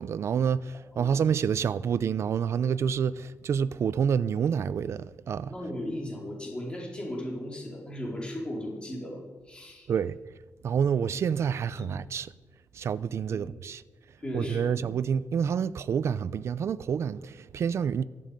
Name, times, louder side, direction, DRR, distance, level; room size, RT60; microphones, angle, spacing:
voice 1, 0.0-5.5 9.9-10.2 10.6-12.3 12.7-13.8 14.3-18.0, right 7 dB, 60° right, 0.6 m, -28 dB
voice 2, 5.5-9.2 9.5-9.9 11.8-11.9 13.3-13.5 14.2-14.8, left 1 dB, 20° left, 4.5 m, -36 dB
18.5 x 14.5 x 5.3 m
wide cardioid pair, 135°, 5 cm